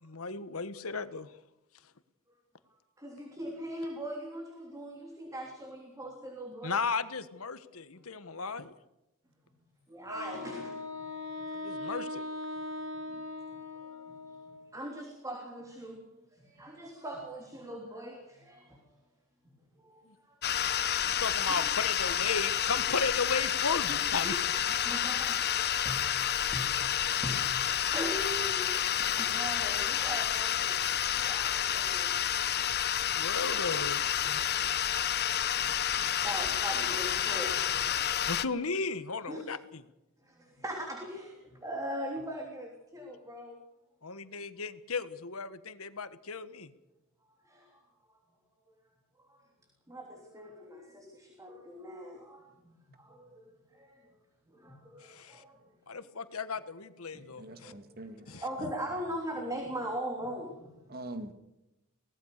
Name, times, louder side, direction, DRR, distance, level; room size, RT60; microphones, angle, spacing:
voice 1, 0.0-1.3 6.6-8.7 11.5-12.2 21.2-24.4 33.1-34.4 38.3-39.8 44.0-46.7 55.0-55.4 55.9-57.7 58.3-58.7, left 4 dB, 75° left, 12 dB, 1.5 m, -35 dB
voice 2, 3.0-6.8 9.9-11.1 11.4-11.5 13.0-13.2 13.5-14.2 14.4-18.8 19.4-21.2 21.5-21.7 24.2-24.4 24.8-25.5 25.8-26.0 26.5-30.8 31.1-32.1 34.8-38.5 39.3-39.6 40.2-43.6 47.4-47.8 49.3-49.4 49.9-54.1 54.5-55.7 57.1-60.7, equal, 15° right, 1 dB, 3.3 m, -41 dB
Wind instrument woodwind instrument, 10.1-14.7, left 2 dB, 65° right, 2.6 m, -40 dB
sound 1, 20.4-38.4, left 10 dB, 50° left, 1.0 m, -30 dB
voice 3, 57.3-58.3 60.9-61.3, right 1 dB, 45° right, 9 dB, 2.1 m, -43 dB
23.5 x 18.5 x 6.7 m, 0.91 s
head